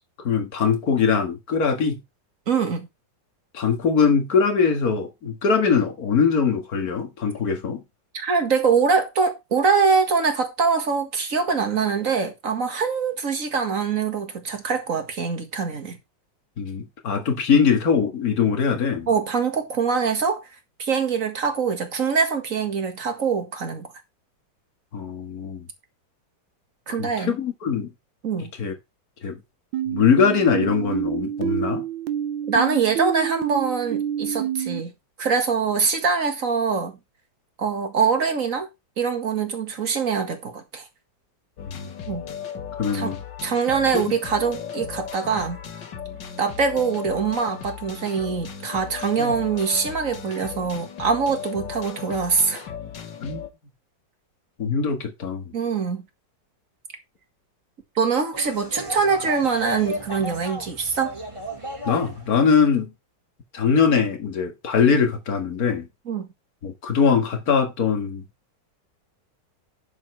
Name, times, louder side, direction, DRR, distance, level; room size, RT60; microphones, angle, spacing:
voice 1, 0.2-2.0 3.5-7.8 16.6-19.1 24.9-25.7 26.9-27.9 28.6-28.7 29.2-29.4 29.9-31.9 41.7-41.8 42.8-43.2 49.2-49.3 53.2-53.4 54.6-55.4 61.9-62.9 63.5-65.9 66.6-68.2, left 6 dB, 50° left, 2.2 m, -22 dB
voice 2, 2.5-2.9 8.1-16.0 19.1-20.4 20.8-23.9 26.9-27.3 28.2-28.5 32.5-34.9 35.2-37.0 37.6-38.7 39.0-40.8 42.1-42.3 42.9-43.2 43.4-45.6 46.4-52.7 55.5-56.1 58.0-61.2 66.1-66.3, right 5 dB, 45° right, 2.1 m, -23 dB
sound 1, 29.7-34.8, right 10 dB, 90° right, 1.5 m, -27 dB
sound 2, 41.6-53.5, left 7 dB, 75° left, 2.1 m, -36 dB
sound 3, 58.3-62.5, equal, 15° right, 2.4 m, -34 dB
11.0 x 7.1 x 3.3 m
omnidirectional pair, 2.0 m